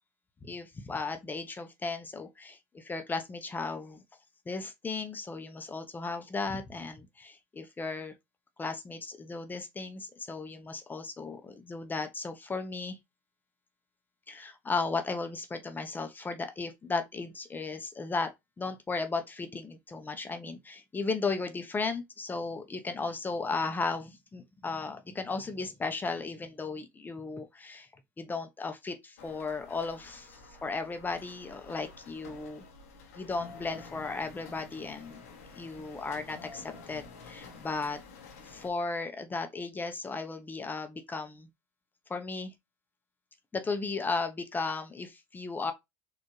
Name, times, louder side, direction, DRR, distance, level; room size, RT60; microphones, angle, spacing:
voice 1, 0.4-4.0 4.5-8.1 8.6-13.0 14.3-27.9 28.2-32.7 33.2-35.2 35.5-38.0 38.4-41.5 42.1-42.5 43.5-45.7, left 4 dB, 25° left, 0.8 m, -35 dB
sound 1, 29.2-38.7, left 4 dB, 90° left, 1.0 m, -50 dB
4.2 x 2.6 x 3.1 m
hypercardioid pair, 80°, 8 cm